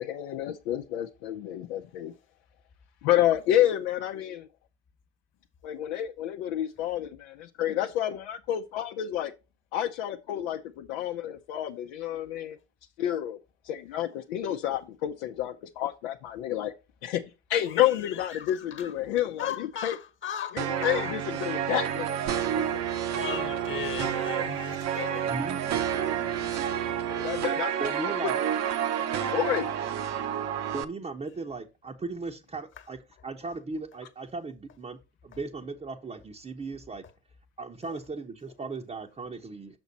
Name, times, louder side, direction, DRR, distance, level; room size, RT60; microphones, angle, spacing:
voice 1, 0.0-2.1 3.0-4.5 5.6-9.3 9.7-12.6 13.0-13.4 13.6-16.7 17.0-17.2 17.5-20.0 20.5-22.6 27.1-28.3 29.0-29.7, left 12 dB, 70° left, 0.8 m, -29 dB
voice 2, 17.7-18.9 19.4-21.1 21.7-21.9 22.3-22.6 23.1-25.5 25.8-26.7 37.9-38.0, left 9 dB, 35° left, 1.4 m, -39 dB
sound 1, 20.6-30.8, right 9 dB, 50° right, 0.9 m, -29 dB
voice 3, 25.3-25.6 27.8-28.4 30.7-37.0 37.6-39.8, right 3 dB, 20° right, 0.9 m, -37 dB
7.0 x 6.0 x 4.1 m
hypercardioid pair, 80°, 34 cm